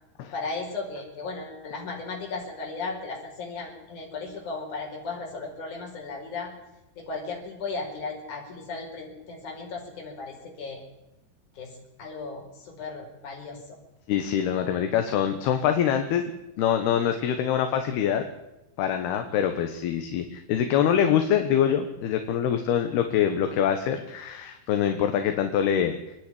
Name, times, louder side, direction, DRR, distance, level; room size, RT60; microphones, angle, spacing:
voice 1, 0.3-6.5 7.0-10.8 11.6-13.8, left 3 dB, 45° left, 0 dB, 6.3 m, -36 dB
voice 2, 14.1-16.3 16.6-18.2 18.8-26.0, left 9 dB, 70° left, 7 dB, 3.1 m, -24 dB
26.0 x 10.5 x 10.0 m, 0.95 s
omnidirectional pair, 5.2 m